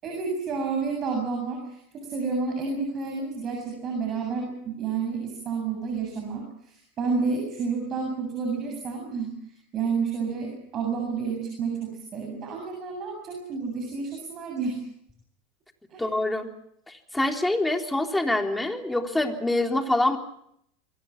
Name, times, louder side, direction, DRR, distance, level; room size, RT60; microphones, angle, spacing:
voice 1, 0.0-1.8 2.0-9.3 9.7-14.8 15.9-16.0, right 5 dB, 40° right, 2 dB, 7.6 m, -30 dB
voice 2, 16.0-16.5 16.9-20.2, left 2 dB, 5° left, 4 dB, 3.6 m, -25 dB
28.0 x 23.0 x 6.0 m, 0.72 s
hypercardioid pair, 90°, 0 cm